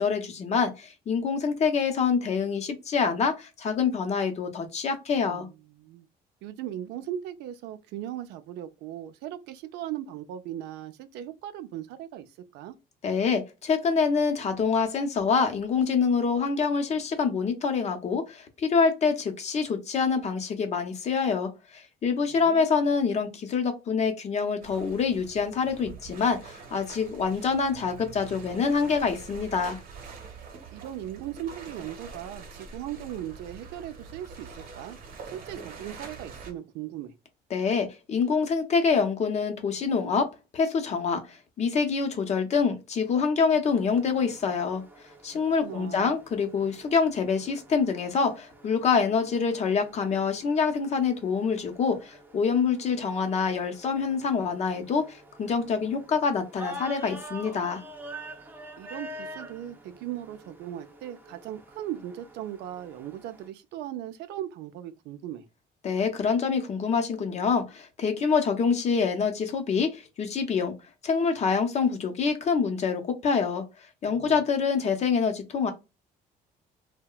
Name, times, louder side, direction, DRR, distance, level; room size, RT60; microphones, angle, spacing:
voice 1, 0.0-5.5 13.0-29.8 37.5-44.8 45.2-57.8 65.8-70.7 71.0-73.6 74.0-75.7, left 5 dB, 40° left, 0.6 m, -26 dB
voice 2, 5.3-6.1 6.4-12.3 12.5-12.8 22.3-22.6 30.7-35.0 35.3-37.1 45.3-46.1 58.8-65.5 74.0-74.4, right 11 dB, 85° right, 0.4 m, -38 dB
sound 1, 24.6-36.5, right 5 dB, 60° right, 0.9 m, -45 dB
sound 2, 43.7-63.5, right 1 dB, 10° right, 0.5 m, -47 dB
2.8 x 2.1 x 2.2 m
cardioid pair, 110°, 17 cm